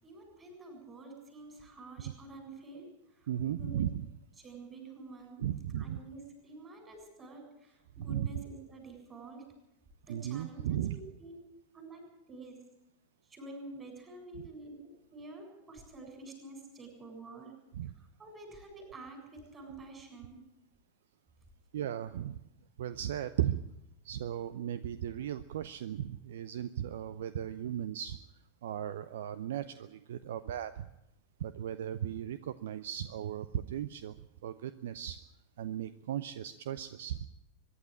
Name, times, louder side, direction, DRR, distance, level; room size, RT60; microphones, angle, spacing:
voice 1, 0.0-3.3 3.6-3.7 4.4-5.4 5.8-9.5 10.0-11.4 11.7-12.6 13.2-14.7 15.1-17.5 17.8-20.4, right 2 dB, 20° right, 3 dB, 7.6 m, -49 dB
voice 2, 3.3-4.0 5.4-6.0 8.1-8.3 10.1-11.0 17.8-17.9 21.7-22.4 22.8-23.6 24.0-28.2 28.6-30.9 31.4-34.2 34.4-35.2 35.6-37.2, right 11 dB, 60° right, 14 dB, 0.7 m, -36 dB
23.0 x 11.5 x 10.0 m, 0.85 s
figure-of-eight pair, 90°, 0 cm